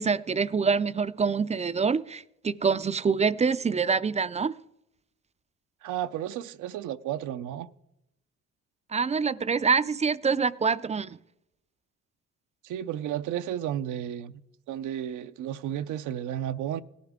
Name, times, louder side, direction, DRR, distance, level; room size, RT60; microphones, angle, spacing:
voice 1, 0.0-4.5 8.9-11.2, right 5 dB, 25° right, 0.3 m, -26 dB
voice 2, 5.8-7.7 12.6-14.3 14.7-16.8, right 11 dB, 85° right, 0.6 m, -32 dB
17.5 x 11.5 x 3.6 m
cardioid pair, 90°, 30 cm